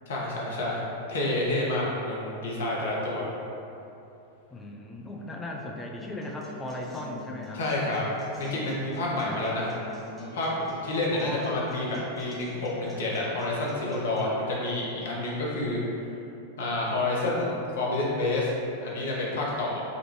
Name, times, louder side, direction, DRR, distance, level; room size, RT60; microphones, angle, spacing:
voice 1, 0.1-0.8 1.1-3.3 7.5-8.0 8.4-9.7 10.3-15.8 16.6-18.5 18.8-19.8, left 2 dB, 60° left, -4 dB, 0.9 m, -29 dB
voice 2, 4.5-7.6 9.2-9.4 11.1-12.0, left 1 dB, 15° left, 0 dB, 0.4 m, -37 dB
Acoustic guitar, 6.2-14.2, equal, 15° right, 0.9 m, -45 dB
4.9 x 2.5 x 3.1 m, 2.8 s
figure-of-eight pair, 90°, 0 cm